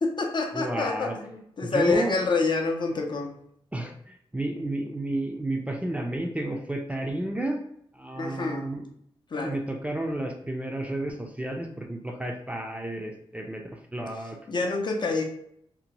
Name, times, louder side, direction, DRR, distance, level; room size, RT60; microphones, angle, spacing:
voice 1, 0.0-3.3 8.2-8.6 9.3-9.6 14.5-15.2, left 3 dB, 50° left, 2 dB, 0.5 m, -27 dB
voice 2, 0.5-1.2 1.6-2.1 3.7-7.6 7.9-8.8 9.4-13.6 13.9-14.4, right 1 dB, 10° right, 2 dB, 0.4 m, -31 dB
2.7 x 2.1 x 2.9 m, 0.71 s
wide cardioid pair, 85°, 10 cm